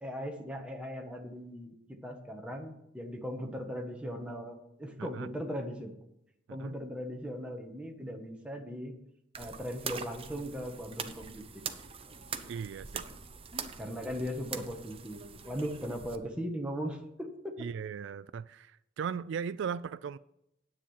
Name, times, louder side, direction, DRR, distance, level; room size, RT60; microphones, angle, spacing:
voice 1, 0.0-5.9 6.5-8.9 9.4-11.4 13.8-17.7, equal, 5° right, 1.4 m, -38 dB
sound 1, 9.3-16.2, right 6 dB, 30° right, 0.7 m, -43 dB
voice 2, 12.4-13.1 17.6-20.2, right 7 dB, 65° right, 0.3 m, -38 dB
10.0 x 8.4 x 5.7 m
head